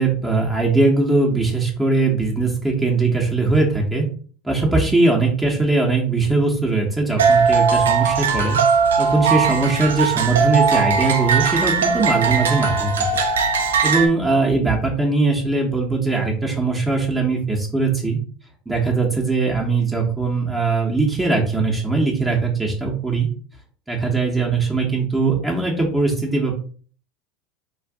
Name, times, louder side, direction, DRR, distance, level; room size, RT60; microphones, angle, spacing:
voice 1, 0.0-4.1 4.4-8.6 9.0-12.9 13.8-18.2 18.7-23.3 23.9-26.6, right 3 dB, 10° right, -1 dB, 0.8 m, -20 dB
sound 1, 7.2-14.1, right 5 dB, 85° right, 0.5 m, -19 dB
2.5 x 2.4 x 3.5 m, 0.43 s
hypercardioid pair, 80°, 0 cm